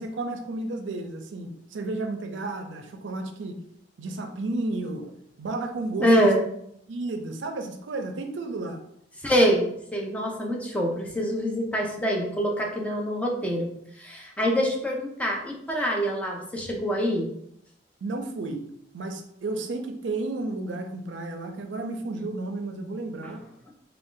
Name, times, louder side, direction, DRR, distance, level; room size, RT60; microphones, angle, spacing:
voice 1, 0.0-3.6 4.0-5.1 5.4-6.3 6.9-8.8 18.0-18.7 18.9-23.4, right 2 dB, 85° right, 6 dB, 0.5 m, -32 dB
voice 2, 6.0-6.4 9.2-13.7 14.0-17.3, equal, 10° left, -1 dB, 0.6 m, -25 dB
3.6 x 2.4 x 3.7 m, 0.72 s
head